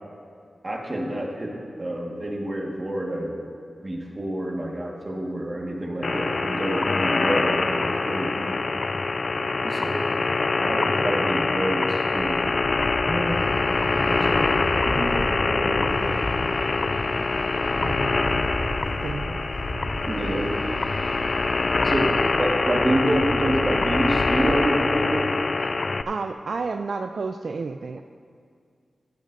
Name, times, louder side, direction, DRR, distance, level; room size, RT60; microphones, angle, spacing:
voice 1, 0.6-1.5 1.8-3.4 3.8-8.6 9.4-9.9 10.6-12.5 13.0-13.4 13.9-16.2 20.1-20.5 21.8-25.3, right 1 dB, 25° right, -1 dB, 1.6 m, -28 dB
sound 1, 6.0-26.0, left 3 dB, 45° left, 0.3 m, -24 dB
sound 2, 12.1-24.6, left 1 dB, 85° left, 3.6 m, -34 dB
sound 3, 13.2-22.7, right 1 dB, 80° right, 2.1 m, -47 dB
voice 2, 17.8-18.4 19.0-19.4 26.1-28.0, right 4 dB, 60° right, 7 dB, 0.3 m, -31 dB
15.5 x 14.5 x 2.6 m, 2.2 s
wide cardioid pair, 135°, 0 cm